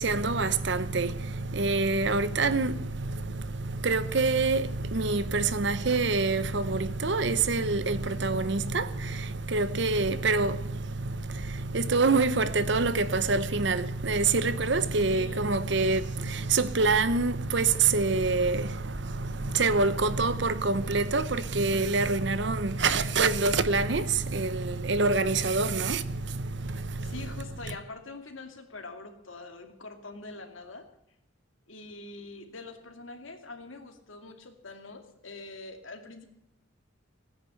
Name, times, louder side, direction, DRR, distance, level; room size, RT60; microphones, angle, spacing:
voice 1, 0.0-27.3 27.7-27.8, right 3 dB, 60° right, 0.9 m, -26 dB
voice 2, 15.0-15.5 27.0-30.9 31.7-36.3, left 3 dB, 80° left, 2.4 m, -44 dB
17.5 x 10.0 x 7.8 m
head